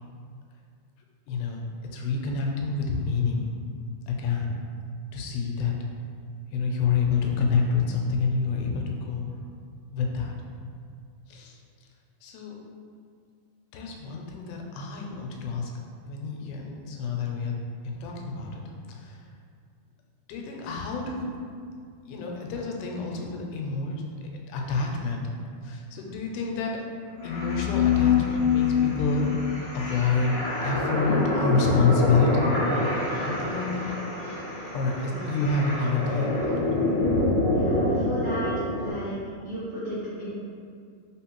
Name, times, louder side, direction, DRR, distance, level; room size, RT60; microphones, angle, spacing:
voice 1, 1.3-1.6 1.9-3.6 4.1-4.6 5.1-5.7 6.5-9.4 9.9-10.3 11.3-11.6 12.2-12.6 13.7-15.7 16.0-17.5 17.8-18.6 18.9-19.2 20.3-21.3 22.1-24.0 24.5-25.2 25.6-26.8 27.2-29.3 29.7-32.6 33.2-33.9 34.7-36.7, left 4 dB, 90° left, 0 dB, 2.1 m, -28 dB
sound 1, 27.2-38.9, left 3 dB, 70° left, 1.3 m, -26 dB
voice 2, 37.5-39.2 39.4-40.3, equal, 75° right, -12 dB, 1.1 m, -34 dB
4.1 x 3.8 x 2.9 m, 2.2 s
omnidirectional pair, 3.5 m